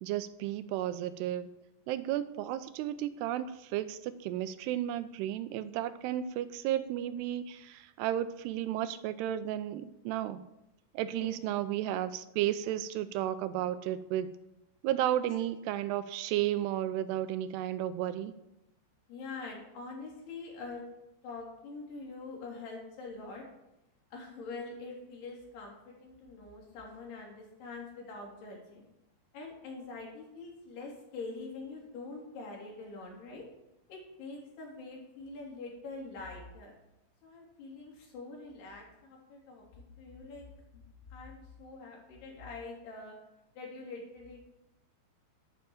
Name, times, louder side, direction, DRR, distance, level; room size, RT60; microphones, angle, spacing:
voice 1, 0.0-1.5 1.9-10.4 10.9-14.3 14.8-18.3, right 12 dB, 85° right, 13 dB, 2.6 m, -33 dB
voice 2, 19.1-20.8 21.2-23.5 24.1-28.9 29.3-33.5 33.9-36.7 37.2-40.5 40.7-40.8 41.1-43.2 43.6-44.4, left 3 dB, 70° left, -1 dB, 5.1 m, -44 dB
11.0 x 9.1 x 7.1 m, 0.90 s
omnidirectional pair, 4.9 m